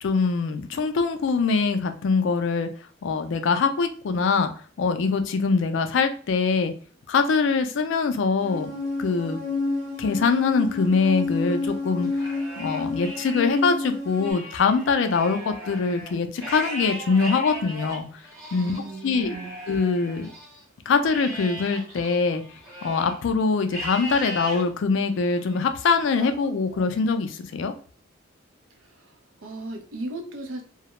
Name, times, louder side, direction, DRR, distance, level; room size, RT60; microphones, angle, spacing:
voice 1, 0.0-2.7 3.0-4.5 4.8-6.7 7.1-8.7 9.0-9.4 10.0-12.1 12.6-18.1 18.5-18.7 19.0-19.4 19.7-20.3 20.9-22.4 22.8-27.7, left 4 dB, 60° left, 8 dB, 0.3 m, -23 dB
sound 1, 8.4-14.3, left 3 dB, 45° right, 0.8 m, -29 dB
Livestock farm animals working animals, 12.0-13.6 14.1-20.6 21.1-23.2 23.7-24.6 25.1-25.6 26.1-27.2, right 1 dB, 15° right, 1.0 m, -38 dB
voice 2, 18.6-19.6 29.4-30.6, right 2 dB, 75° right, 4 dB, 0.5 m, -35 dB
2.3 x 2.0 x 2.9 m, 0.42 s
head